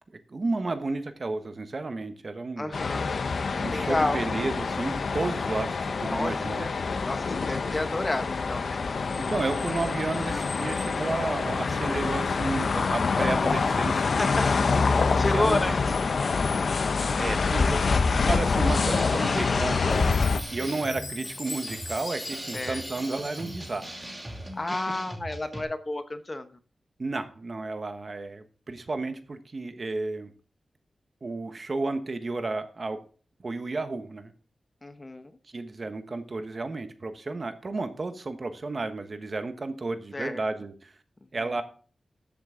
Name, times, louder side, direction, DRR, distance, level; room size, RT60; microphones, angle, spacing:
voice 1, 0.3-2.8 3.6-6.7 9.2-14.3 15.1-15.7 17.1-20.2 20.5-24.1 27.0-30.3 31.2-33.0 33.4-34.3 35.5-40.9 41.3-41.6, right 3 dB, 40° right, 8 dB, 1.2 m, -32 dB
voice 2, 2.6-3.1 3.7-4.2 6.1-6.7 7.0-8.8 10.2-10.4 14.2-14.5 15.2-15.7 22.5-22.8 24.5-26.5 34.8-35.3 40.1-40.4, left 2 dB, 25° left, 9 dB, 0.9 m, -30 dB
sound 1, 2.7-20.4, left 4 dB, 65° left, 0.7 m, -26 dB
sound 2, 18.6-25.6, right 1 dB, 20° right, 2.6 m, -40 dB
Chime, 19.9-24.1, left 3 dB, 45° left, 2.9 m, -41 dB
13.5 x 7.9 x 3.8 m, 0.41 s
wide cardioid pair, 115°, 0 cm